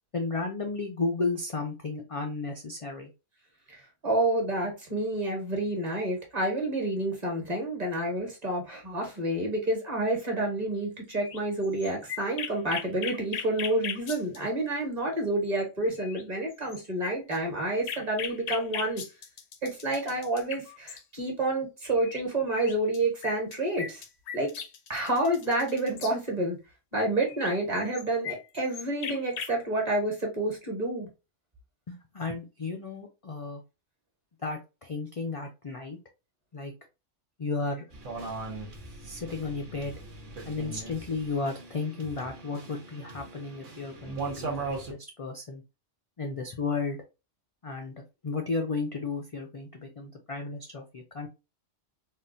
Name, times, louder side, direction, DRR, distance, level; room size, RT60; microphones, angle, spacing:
voice 1, 0.1-3.1 31.9-33.6 34.4-36.0 36.5-36.7 37.4-37.9 39.0-39.9 40.5-45.6 46.2-47.0 47.6-51.3, left 3 dB, 50° left, 0.4 m, -33 dB
voice 2, 3.7-19.0 19.6-24.0 24.3-24.5 24.9-26.6 26.9-31.1, right 1 dB, 35° right, 1.2 m, -29 dB
sound 1, 11.1-14.4 15.6-15.7 16.0-16.2 16.5-21.0 22.0-22.2 22.5-26.1 27.3-29.5, left 7 dB, 70° left, 0.8 m, -38 dB
sound 2, 37.9-44.9, right 3 dB, 85° right, 1.2 m, -39 dB
3.7 x 2.3 x 2.6 m
omnidirectional pair, 1.2 m